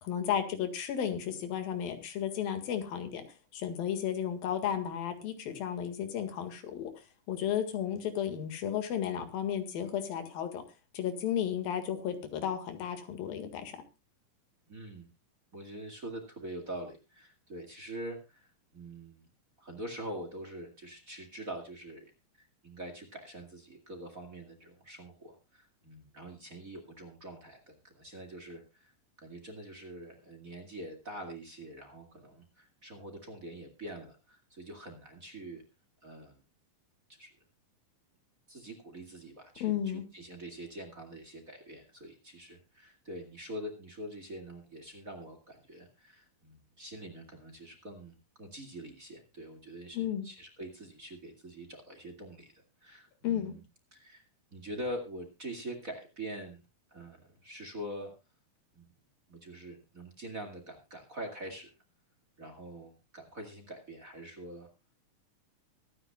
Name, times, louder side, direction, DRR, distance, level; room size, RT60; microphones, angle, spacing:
voice 1, 0.0-3.3 3.5-10.6 10.9-13.7 39.6-40.0 49.9-50.3 53.2-53.6, left 9 dB, 85° left, 8 dB, 3.6 m, -33 dB
voice 2, 14.7-15.1 15.5-19.2 19.6-28.9 29.2-35.6 36.0-36.4 37.2-37.3 38.5-52.5 52.8-53.6 53.9-54.2 54.5-56.6 56.9-58.1 58.7-58.9 59.3-61.7 62.4-64.7, right 1 dB, 25° right, 5 dB, 2.2 m, -44 dB
24.5 x 9.7 x 2.3 m, 0.26 s
omnidirectional pair, 4.1 m